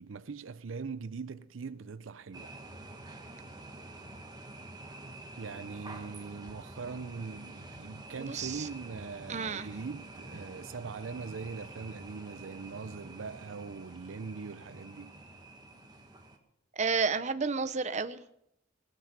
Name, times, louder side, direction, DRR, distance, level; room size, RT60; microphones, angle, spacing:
voice 1, 0.0-2.5 5.4-15.1, right 5 dB, 80° right, 0.5 m, -41 dB
sound 1, 2.3-16.4, right 2 dB, 20° right, 1.6 m, -48 dB
voice 2, 8.3-8.7 9.3-9.7 16.8-18.2, right 5 dB, 35° right, 0.8 m, -31 dB
19.0 x 9.3 x 6.8 m
head